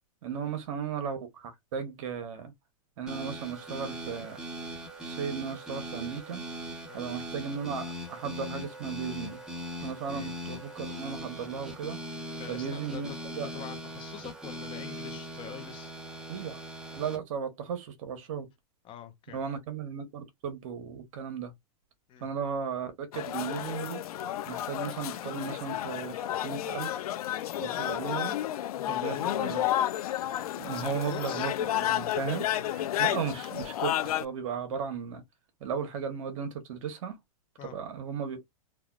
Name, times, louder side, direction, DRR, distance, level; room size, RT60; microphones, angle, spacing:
voice 1, 0.2-2.5 3.0-4.4 5.0-6.4 6.9-9.4 9.8-12.0 12.5-13.5 16.3-16.6 16.9-18.5 19.3-21.5 22.2-24.0 24.5-27.0 27.6-28.4 28.9-29.7 30.6-35.2 35.6-37.2 37.6-38.4, right 6 dB, 60° right, 1.0 m, -36 dB
sound 1, 3.1-17.2, equal, 5° right, 0.8 m, -40 dB
voice 2, 12.4-13.2 13.4-15.9 18.8-19.4 22.1-22.3 27.7-27.9 28.8-29.5 30.7-31.5 37.6-37.7, left 9 dB, 25° left, 0.7 m, -45 dB
sound 2, 23.1-34.2, left 12 dB, 75° left, 0.4 m, -31 dB
3.3 x 2.3 x 2.3 m
hypercardioid pair, 135°, 19 cm